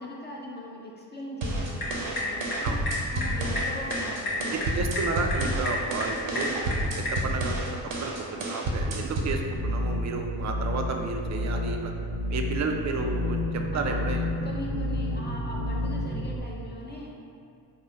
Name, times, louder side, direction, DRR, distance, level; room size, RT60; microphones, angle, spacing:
voice 1, 0.0-2.8 3.1-4.7 13.7-14.0 14.4-17.2, left 1 dB, 25° left, -3 dB, 0.5 m, -40 dB
sound 1, 1.4-9.4, right 1 dB, 70° right, 0.8 m, -30 dB
sound 2, 1.6-7.3, left 2 dB, 50° left, 1.0 m, -33 dB
voice 2, 4.5-7.6 8.0-11.9 12.3-14.3, right 4 dB, 40° right, 3 dB, 0.4 m, -32 dB
sound 3, 9.6-16.4, left 1 dB, 75° left, 0.7 m, -30 dB
3.9 x 2.3 x 2.8 m, 2.3 s
hypercardioid pair, 50°, 46 cm